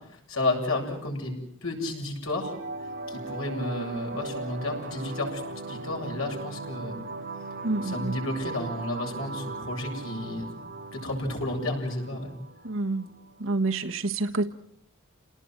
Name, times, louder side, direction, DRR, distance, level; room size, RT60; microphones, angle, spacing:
voice 1, 0.0-2.5 3.1-7.0 7.8-10.5 10.9-12.4, left 2 dB, 85° left, 1 dB, 7.9 m, -32 dB
sound 1, 2.4-13.4, right 2 dB, 45° right, 3.9 m, -38 dB
voice 2, 7.6-8.1 12.6-13.0 13.4-14.5, right 3 dB, 75° right, 6 dB, 1.5 m, -27 dB
29.0 x 19.0 x 7.7 m, 0.71 s
head